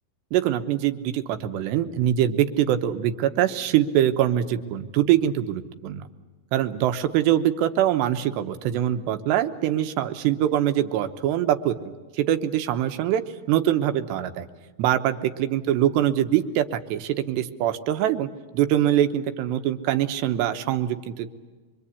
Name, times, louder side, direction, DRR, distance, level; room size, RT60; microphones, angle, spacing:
voice 1, 0.3-6.1 6.5-13.2 13.5-14.5 14.8-21.3, right 11 dB, 90° right, 8 dB, 3.2 m, -23 dB
25.5 x 23.5 x 8.5 m, 1.3 s
omnidirectional pair, 4.9 m